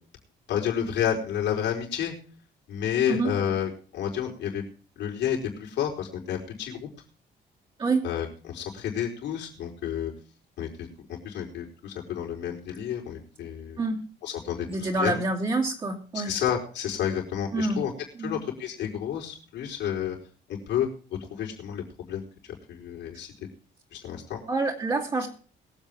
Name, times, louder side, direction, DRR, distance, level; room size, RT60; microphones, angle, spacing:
voice 1, 0.5-2.1 2.7-4.6 5.0-6.9 8.0-10.1 10.6-13.8 14.2-15.2 16.1-17.9 18.2-20.1 20.5-20.9 21.3-22.2 22.7-23.3 23.9-24.4, left 9 dB, 75° left, -2 dB, 4.6 m, -30 dB
voice 2, 14.7-16.3 17.5-17.8 18.1-18.4 24.5-25.3, right 3 dB, 25° right, -2 dB, 2.7 m, -27 dB
22.5 x 8.1 x 3.6 m, 0.41 s
cardioid pair, 170°, 18 cm